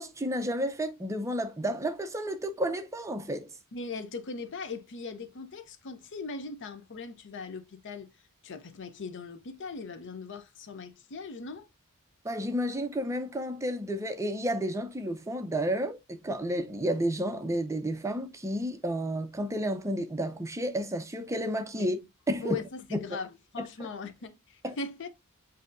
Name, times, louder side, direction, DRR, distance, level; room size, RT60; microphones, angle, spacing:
voice 1, 0.0-3.5 12.2-22.0 22.3-22.6 22.9-23.1 23.8-23.9 24.6-24.8, equal, 15° right, 0.5 m, -31 dB
voice 2, 3.7-8.1 8.4-11.7 21.8-21.9 22.4-25.1, left 4 dB, 55° left, 0.6 m, -40 dB
7.5 x 2.8 x 2.5 m
head